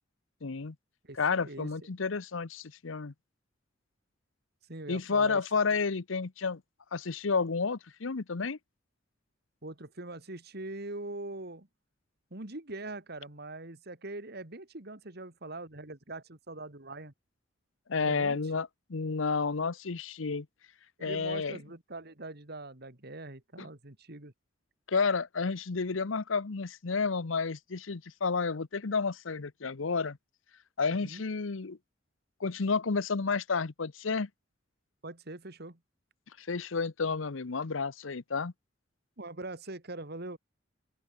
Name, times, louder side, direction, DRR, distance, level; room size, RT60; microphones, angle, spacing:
voice 1, 0.4-0.7 1.2-3.1 4.9-6.6 6.9-8.6 17.9-20.5 21.0-21.6 23.6-23.7 24.9-30.2 30.8-31.8 32.4-34.3 36.4-38.5, left 4 dB, 85° left, 0.8 m, -31 dB
voice 2, 1.0-1.7 4.7-5.4 9.6-11.7 12.3-17.1 18.0-18.4 21.0-24.3 31.0-31.2 35.0-35.8 39.2-40.4, right 2 dB, 55° right, 2.7 m, -42 dB
open air
head